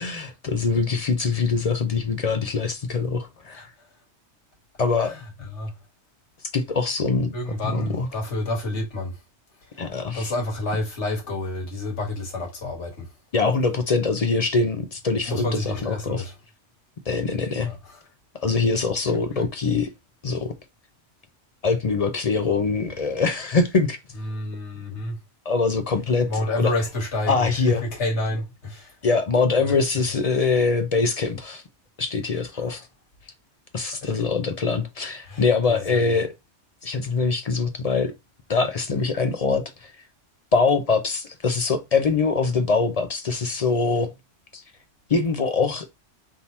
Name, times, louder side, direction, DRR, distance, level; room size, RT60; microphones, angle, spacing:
voice 1, 0.0-3.7 4.8-5.1 6.5-7.3 7.7-8.1 9.8-10.3 13.3-16.3 17.1-17.7 18.3-19.9 20.2-20.5 21.6-24.0 25.5-26.3 26.6-26.7 27.3-27.8 29.0-31.6 32.0-32.8 33.7-36.3 36.8-38.1 38.5-39.9 40.5-44.1 44.5-44.6 45.1-45.9, left 4 dB, 45° left, 0.5 m, -23 dB
voice 2, 3.5-3.9 5.0-5.2 5.5-5.8 7.3-9.2 9.6-13.1 15.2-16.3 17.6-18.0 19.3-19.5 24.2-25.2 26.3-29.0 29.6-30.0 34.0-34.1 35.3-36.2, left 2 dB, 80° left, 1.8 m, -29 dB
3.7 x 2.8 x 4.1 m
omnidirectional pair, 1.2 m